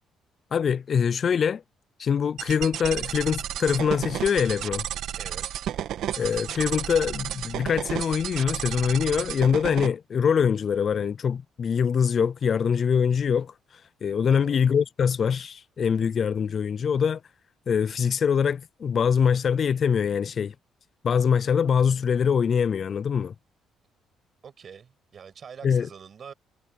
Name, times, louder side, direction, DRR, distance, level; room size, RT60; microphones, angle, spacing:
voice 1, 0.5-1.6 2.0-4.9 6.2-13.5 14.0-17.2 17.7-20.5 21.0-23.3 25.6-25.9, left 7 dB, 40° left, 0.3 m, -24 dB
sound 1, 2.4-9.9, right 11 dB, 70° right, 1.5 m, -32 dB
voice 2, 5.2-5.6 14.3-14.6 24.4-26.3, right 7 dB, 40° right, 6.1 m, -45 dB
cardioid pair, 145°, 0 cm